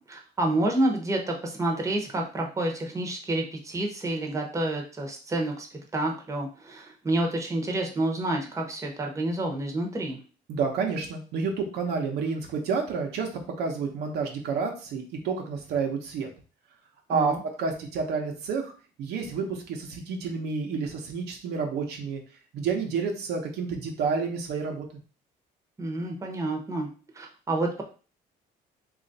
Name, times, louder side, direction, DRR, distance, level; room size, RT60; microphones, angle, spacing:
voice 1, 0.0-5.7 5.9-10.2 17.1-17.4 25.8-26.9 27.1-27.8, right 1 dB, 15° right, 0 dB, 0.9 m, -29 dB
voice 2, 10.5-13.3 13.6-16.3 17.1-18.7 19.0-22.2 22.5-24.8, right 5 dB, 75° right, 2 dB, 0.9 m, -29 dB
3.1 x 2.5 x 3.9 m, 0.36 s
cardioid pair, 110°, 17 cm